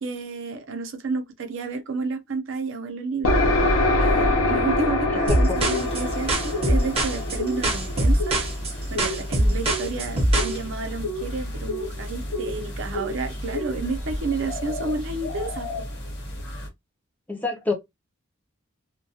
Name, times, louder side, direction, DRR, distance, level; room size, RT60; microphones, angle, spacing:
voice 1, 0.0-3.4 4.0-8.4 8.9-15.9, right 3 dB, 65° right, 0.6 m, -31 dB
sound 1, 3.2-8.8, left 2 dB, 80° left, 0.6 m, -24 dB
sound 2, 5.3-10.6, right 1 dB, 30° right, 0.7 m, -23 dB
sound 3, 5.6-16.7, left 1 dB, 55° left, 1.0 m, -32 dB
voice 2, 17.3-17.7, left 3 dB, 10° left, 0.4 m, -26 dB
2.3 x 2.2 x 2.7 m
head